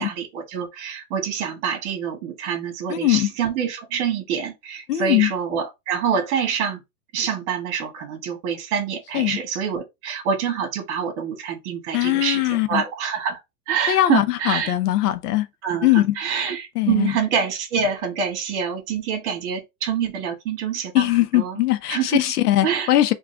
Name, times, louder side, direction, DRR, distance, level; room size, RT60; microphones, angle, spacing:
voice 1, 0.0-6.8 7.1-13.4 13.7-14.7 15.6-21.6 21.9-22.2 22.6-22.9, right 7 dB, 45° right, 1.4 m, -26 dB
voice 2, 2.9-3.3 4.9-5.3 9.1-9.4 11.9-12.8 13.9-15.5 15.8-16.2 16.8-17.1 20.9-23.1, left 15 dB, 80° left, 0.7 m, -20 dB
3.6 x 2.4 x 3.3 m
supercardioid pair, 155°, 46 cm